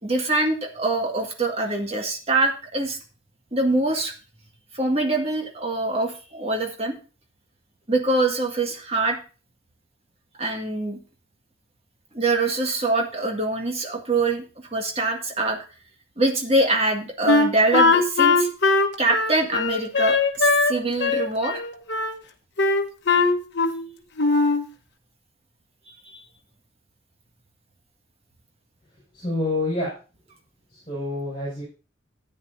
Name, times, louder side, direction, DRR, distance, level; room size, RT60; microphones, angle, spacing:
voice 1, 0.0-3.0 3.5-4.1 4.7-7.0 7.9-9.2 10.4-11.0 12.1-15.6 16.2-18.5 19.0-21.6 26.0-26.2, right 2 dB, 30° right, 1 dB, 1.9 m, -24 dB
Wind instrument woodwind instrument, 17.3-20.7 21.0-22.1 22.6-23.9 24.2-24.7, left 3 dB, 55° left, 1.1 m, -20 dB
voice 2, 29.1-29.9 30.7-31.6, left 2 dB, 25° left, -6 dB, 5.2 m, -27 dB
13.0 x 9.7 x 2.7 m, 0.35 s
head